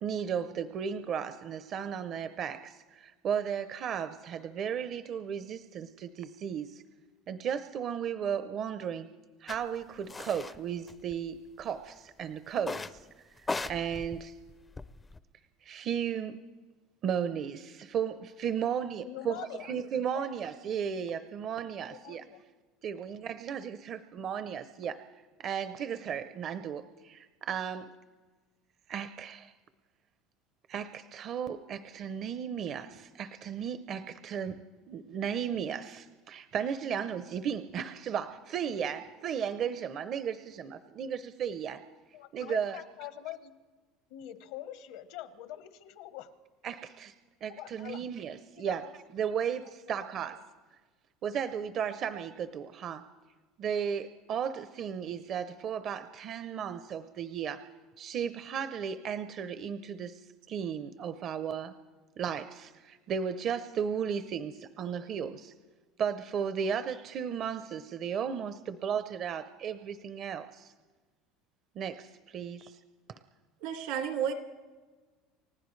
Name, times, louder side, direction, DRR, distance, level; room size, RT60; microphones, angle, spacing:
voice 1, 0.0-6.8 7.3-9.1 9.4-13.1 13.7-14.3 15.6-16.4 17.0-22.2 22.8-25.0 25.4-27.9 28.9-29.5 30.7-34.6 34.9-41.8 42.3-42.8 46.6-47.1 47.4-48.8 49.1-50.4 51.2-53.1 53.6-57.7 58.0-60.2 60.5-61.7 62.2-65.5 66.0-70.7 71.8-72.8 73.1-73.2, right 8 dB, 40° right, 12 dB, 0.5 m, -35 dB
sound 1, 9.5-9.6 10.1-10.6 10.9-11.6 12.6-13.0 13.4-15.2, left 3 dB, 15° left, 0.4 m, -38 dB
voice 2, 19.0-19.7 20.1-20.4 21.9-22.4 42.1-43.5 44.1-46.3 47.5-48.0 48.5-48.9 49.9-50.1, left 13 dB, 75° left, 11 dB, 1.1 m, -44 dB
voice 3, 73.6-74.3, right 8 dB, 80° right, 5 dB, 2.1 m, -31 dB
29.5 x 15.0 x 3.2 m, 1.3 s
cardioid pair, 150°, 0 cm